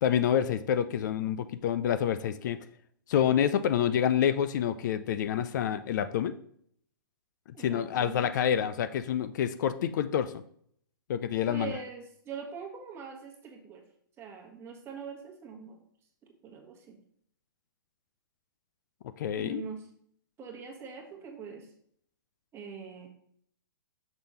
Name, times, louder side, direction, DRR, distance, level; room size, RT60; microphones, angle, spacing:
voice 1, 0.0-2.6 3.1-6.4 7.6-10.4 11.1-11.7 19.2-19.6, left 9 dB, 55° left, 12 dB, 0.4 m, -27 dB
voice 2, 7.5-8.3 11.5-13.8 14.2-15.8 16.4-17.0 19.4-19.9 20.4-21.7 22.5-23.1, right 5 dB, 20° right, 2 dB, 1.3 m, -42 dB
6.0 x 3.5 x 5.5 m, 0.65 s
hypercardioid pair, 135°, 12 cm